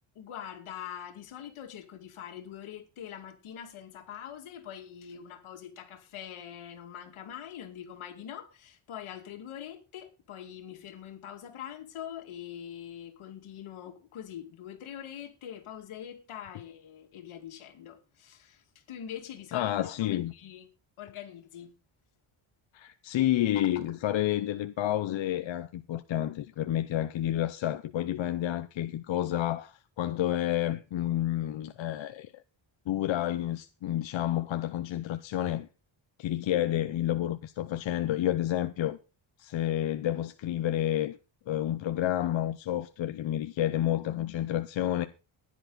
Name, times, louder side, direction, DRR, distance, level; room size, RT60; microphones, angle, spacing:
voice 1, 0.2-20.7 21.0-21.7, left 9 dB, 85° left, 2.4 m, -43 dB
voice 2, 19.5-20.3 22.7-32.3 32.9-35.7 36.2-39.0 39.4-41.2 41.5-45.1, left 12 dB, 65° left, 0.8 m, -30 dB
15.0 x 10.5 x 4.1 m
cardioid pair, 125°, 48 cm